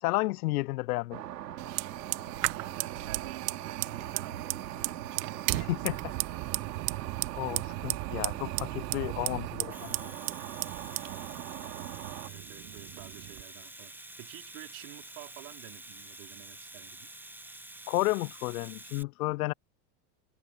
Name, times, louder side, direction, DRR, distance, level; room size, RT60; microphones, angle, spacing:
voice 1, 0.0-1.2 5.5-6.0 7.4-10.1 17.9-19.5, left 20 dB, 65° left, 0.6 m, -32 dB
sound 1, 1.1-12.3, right 11 dB, 80° right, 3.7 m, -41 dB
Fire, 1.6-13.4, right 29 dB, 40° right, 0.5 m, -36 dB
voice 2, 2.5-6.5 12.2-17.1, right 31 dB, 60° right, 4.7 m, -49 dB
Domestic sounds home sounds, 9.7-19.0, right 1 dB, 5° right, 1.5 m, -48 dB
hypercardioid pair, 95°, 48 cm